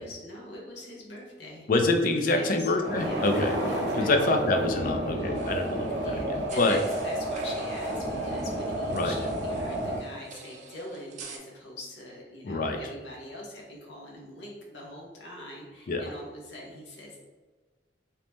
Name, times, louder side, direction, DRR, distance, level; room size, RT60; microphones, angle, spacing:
voice 1, 0.0-1.7 2.3-2.7 3.0-3.3 3.6-4.9 6.0-17.2, left 1 dB, 80° left, -3 dB, 0.9 m, -43 dB
voice 2, 1.7-6.8 8.9-9.2 12.4-12.8 15.9-16.0, left 2 dB, 50° left, 4 dB, 0.4 m, -26 dB
sound 1, 2.7-10.0, right 1 dB, 85° right, 0.8 m, -31 dB
sound 2, 5.3-11.4, right 4 dB, 40° right, 0.4 m, -48 dB
3.0 x 2.7 x 3.4 m, 1.3 s
head